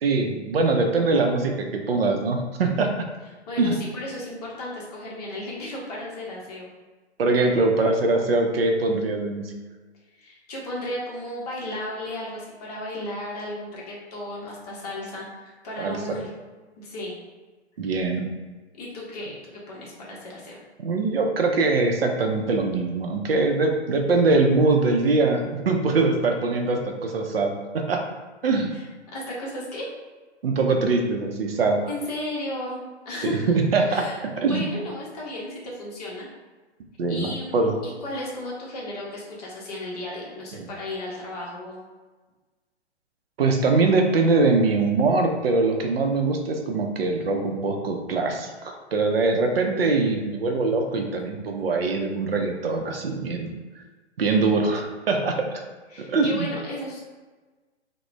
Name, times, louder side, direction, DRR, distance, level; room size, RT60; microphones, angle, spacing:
voice 1, 0.0-2.9 3.6-3.8 7.2-9.5 15.8-16.0 17.8-18.2 20.8-28.0 28.4-28.7 30.4-31.9 33.2-34.0 34.4-34.6 37.0-37.7 40.6-40.7 43.4-53.5 54.2-55.6 56.0-56.5, right 3 dB, 60° right, 3 dB, 0.5 m, -22 dB
voice 2, 3.5-6.7 10.2-16.3 16.8-17.2 18.7-20.6 28.7-29.8 31.9-32.8 33.0-33.6 33.9-36.3 37.1-37.6 37.8-41.8 55.9-57.0, left 1 dB, 35° left, -4 dB, 0.7 m, -34 dB
2.3 x 2.1 x 3.0 m, 1.3 s
figure-of-eight pair, 120°, 34 cm